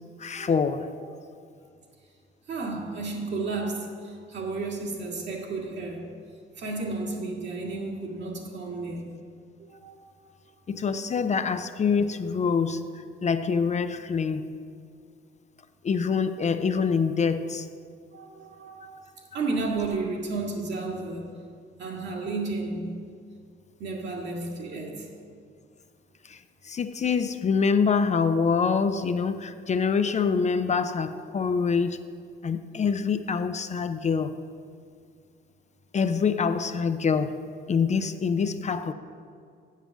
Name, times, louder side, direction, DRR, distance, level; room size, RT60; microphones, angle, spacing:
voice 1, 0.2-0.9 10.7-12.9 13.2-14.6 15.8-17.7 26.3-26.4 26.7-32.0 32.4-34.4 35.9-37.4 37.7-38.9, left 5 dB, 35° left, 0.5 m, -25 dB
voice 2, 2.5-6.1 6.6-9.1 9.6-10.0 18.1-21.3 21.8-23.0 23.8-25.1, right 3 dB, 65° right, 2.0 m, -32 dB
7.4 x 7.4 x 7.1 m
cardioid pair, 90°, 20 cm